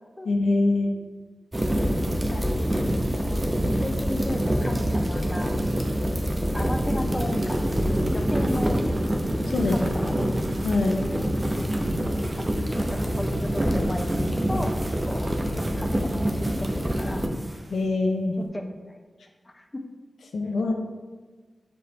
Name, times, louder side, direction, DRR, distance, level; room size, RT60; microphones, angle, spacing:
voice 1, 0.2-0.9 9.4-9.8 10.6-11.1 17.7-18.4 20.3-20.7, left 2 dB, 85° left, 2 dB, 0.4 m, -23 dB
sound 1, 1.5-17.3, equal, 30° right, 0.7 m, -26 dB
voice 2, 2.9-5.6 6.5-8.8 9.7-10.2 12.4-14.7 15.1-15.3 15.8-17.2 18.5-19.0 19.4-19.6 20.5-20.7, left 1 dB, 25° left, 4 dB, 0.5 m, -35 dB
sound 2, 6.8-8.2 8.5-8.9 9.2-11.0 11.3-13.6 14.0-15.3 15.6-16.8 17.3-18.1 18.5-18.6, right 1 dB, 45° right, 1.5 m, -48 dB
4.8 x 3.4 x 3.1 m, 1.4 s
cardioid pair, 45°, 0 cm